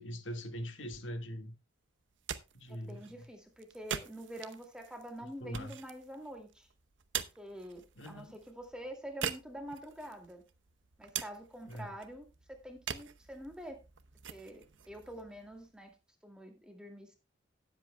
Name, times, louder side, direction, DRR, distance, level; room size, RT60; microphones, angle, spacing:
voice 1, 0.0-1.5 2.5-3.3 5.2-5.8 8.0-8.4 11.6-12.0, equal, 80° left, 1.8 m, -42 dB
sound 1, 2.0-15.9, right 8 dB, 80° right, 0.8 m, -45 dB
voice 2, 2.7-6.7 7.2-10.4 11.0-13.8 14.3-15.9 16.2-17.2, equal, 5° right, 2.3 m, -47 dB
17.5 x 8.0 x 2.2 m
head